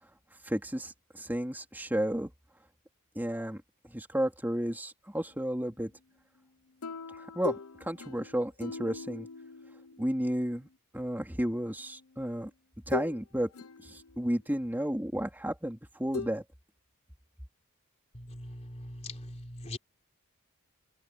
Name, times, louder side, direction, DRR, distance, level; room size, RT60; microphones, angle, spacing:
voice 1, 0.4-2.3 3.1-3.6 3.9-5.9 7.2-9.3 10.0-10.7 10.9-12.5 12.9-13.5 13.8-16.4, equal, 10° right, 2.9 m, -32 dB
sound 1, 6.8-10.4 11.8-11.9 12.9-13.2 13.5-14.4 16.1-16.3, left 4 dB, 85° left, 1.0 m, -40 dB
voice 2, 18.1-19.8, left 1 dB, 30° left, 3.8 m, -42 dB
head